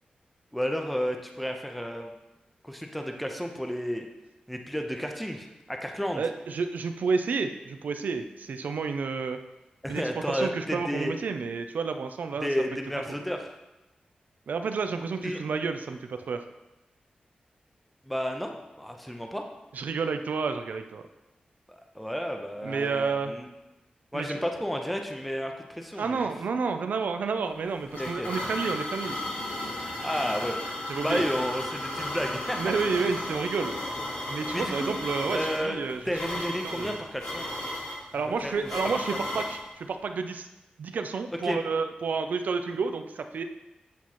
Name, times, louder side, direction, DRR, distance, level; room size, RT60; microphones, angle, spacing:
voice 1, 0.5-2.1 2.6-4.1 4.5-6.2 9.8-11.1 12.4-13.5 15.2-15.4 18.0-19.4 21.7-23.5 24.1-26.3 28.0-28.3 30.0-30.6 30.9-32.6 34.5-35.0 35.3-35.8 36.1-37.5 38.4-39.0 41.4-41.6, equal, ahead, 3 dB, 0.4 m, -32 dB
voice 2, 6.2-9.4 9.9-12.5 14.5-16.4 19.7-21.1 22.6-23.3 24.1-24.3 26.0-29.2 30.9-31.2 32.6-33.8 34.3-36.0 36.6-37.0 38.1-40.5 40.8-43.4, right 5 dB, 75° right, 7 dB, 0.4 m, -30 dB
sound 1, 27.5-39.6, left 1 dB, 85° left, 1.4 m, -34 dB
8.3 x 3.0 x 4.1 m, 1.0 s
wide cardioid pair, 180°, 3 cm